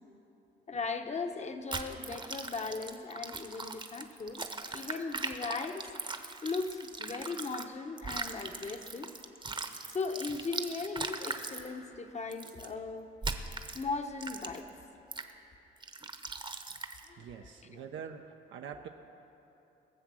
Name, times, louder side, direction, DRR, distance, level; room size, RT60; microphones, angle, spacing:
voice 1, 0.7-4.5 4.7-5.9 6.4-9.1 9.9-13.1 13.7-14.7 17.1-17.2 17.7-17.8, left 4 dB, 35° left, 6 dB, 1.0 m, -38 dB
sound 1, 1.7-7.7 8.0-11.7 12.3-12.7 13.2-13.8 14.2-14.7 15.1-15.3 15.8-17.1, right 3 dB, 25° right, 0.9 m, -40 dB
voice 2, 17.2-18.9, right 7 dB, 75° right, 3 dB, 0.7 m, -45 dB
21.0 x 7.4 x 6.2 m, 2.9 s
cardioid pair, 90°, 20 cm